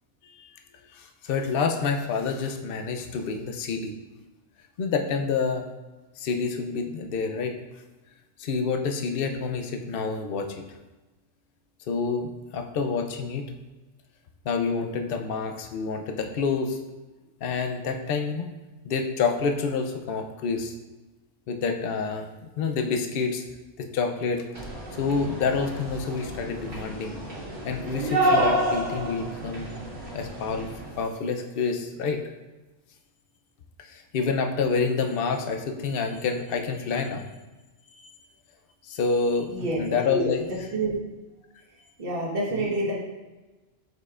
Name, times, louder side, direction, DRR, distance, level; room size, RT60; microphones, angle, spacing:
voice 1, 0.9-4.0 4.8-5.6 6.2-7.6 8.4-10.6 11.9-13.5 14.4-16.8 17.4-18.5 18.8-20.7 21.5-22.3 22.6-23.4 23.8-24.4 24.9-27.2 27.6-29.7 30.1-30.7 31.0-32.2 33.8-37.3 37.9-38.2 38.8-40.7 42.6-42.7, left 5 dB, 60° left, 5 dB, 0.8 m, -28 dB
sound 1, 24.5-31.0, right 1 dB, 80° right, 2.1 m, -29 dB
voice 2, 39.5-40.0 40.7-41.0 42.0-42.9, right 2 dB, 50° right, -4 dB, 1.5 m, -27 dB
7.8 x 5.3 x 2.4 m, 1.1 s
omnidirectional pair, 1.2 m